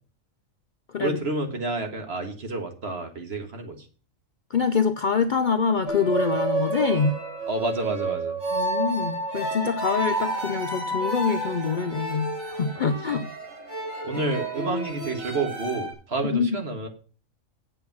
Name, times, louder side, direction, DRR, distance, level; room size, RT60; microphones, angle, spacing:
voice 1, 1.0-3.9 7.5-8.4 14.0-16.9, right 2 dB, 50° right, 5 dB, 1.7 m, -29 dB
voice 2, 4.5-7.2 8.5-13.3 16.3-16.5, left 5 dB, 55° left, 9 dB, 0.6 m, -25 dB
sound 1, 5.9-15.9, right 2 dB, 90° right, 4.2 m, -30 dB
8.3 x 7.9 x 5.9 m, 0.39 s
omnidirectional pair, 1.3 m